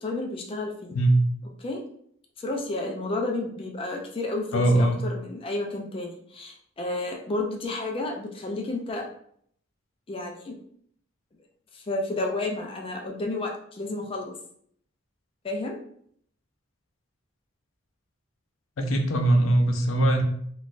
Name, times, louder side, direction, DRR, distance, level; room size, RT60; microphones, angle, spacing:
voice 1, 0.0-0.9 1.6-1.8 2.4-9.0 10.1-10.6 11.7-14.3 15.4-15.8, left 2 dB, 30° left, 1 dB, 0.4 m, -31 dB
voice 2, 4.5-5.0 18.8-20.2, right 1 dB, 80° left, 4 dB, 0.5 m, -21 dB
3.9 x 2.3 x 2.4 m, 0.65 s
head